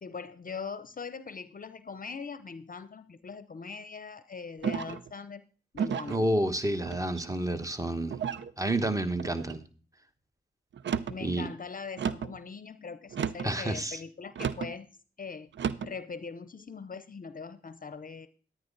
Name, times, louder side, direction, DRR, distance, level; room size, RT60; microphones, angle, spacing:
voice 1, 0.0-5.4 5.7-6.3 11.1-14.9 15.2-15.5 15.8-18.3, left 5 dB, 45° left, 0.7 m, -41 dB
sound 1, 4.6-5.1 5.7-6.2 6.9-7.4 8.1-8.5 9.2-9.6 10.7-11.2 12.0-12.4 13.1-13.6 14.3-14.7 15.5-15.9, right 7 dB, 65° right, 0.6 m, -33 dB
voice 2, 6.1-8.2 8.6-9.6 11.2-11.5 13.4-14.0, right 1 dB, 15° right, 1.2 m, -29 dB
10.5 x 9.6 x 3.9 m
supercardioid pair, 45°, 20 cm